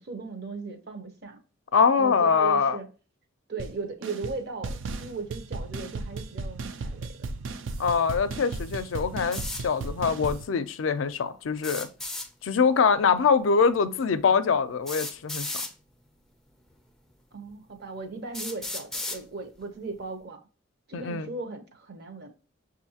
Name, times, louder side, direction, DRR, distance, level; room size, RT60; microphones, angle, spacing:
voice 1, 0.0-1.4 2.0-2.9 3.5-7.3 17.3-20.4 20.9-22.3, right 3 dB, 55° right, 0.8 m, -37 dB
voice 2, 1.7-2.8 7.8-11.9 12.4-15.5 20.9-21.3, left 5 dB, 80° left, 0.4 m, -23 dB
sound 1, 3.6-3.7 4.0-4.4 4.6-10.4, right 3 dB, 75° right, 0.4 m, -35 dB
sound 2, 9.3-9.6 11.6-12.3 13.7-13.8 14.9-15.7 16.7-16.8 17.5-17.6 18.3-19.2, left 2 dB, ahead, 0.4 m, -34 dB
6.3 x 2.5 x 2.8 m
head